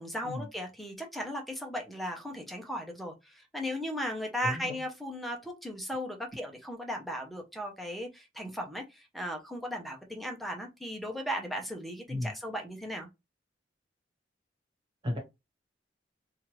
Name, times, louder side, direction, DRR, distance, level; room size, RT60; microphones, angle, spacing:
voice 1, 0.0-13.1, equal, ahead, 0.6 m, -37 dB
voice 2, 4.4-4.8 12.1-12.3 15.0-15.2, left 1 dB, 30° right, 1.4 m, -33 dB
3.1 x 2.4 x 2.9 m
head